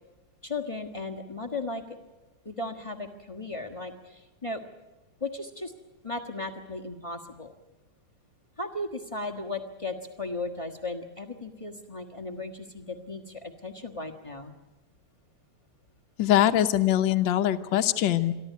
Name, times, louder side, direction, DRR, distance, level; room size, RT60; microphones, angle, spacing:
voice 1, 0.4-1.8 2.4-4.6 5.2-5.7 6.0-7.5 8.6-14.5, left 2 dB, 20° left, 2 dB, 1.2 m, -36 dB
voice 2, 16.2-18.3, left 12 dB, 65° left, 7 dB, 1.6 m, -23 dB
28.0 x 12.0 x 9.5 m, 1.1 s
omnidirectional pair, 2.3 m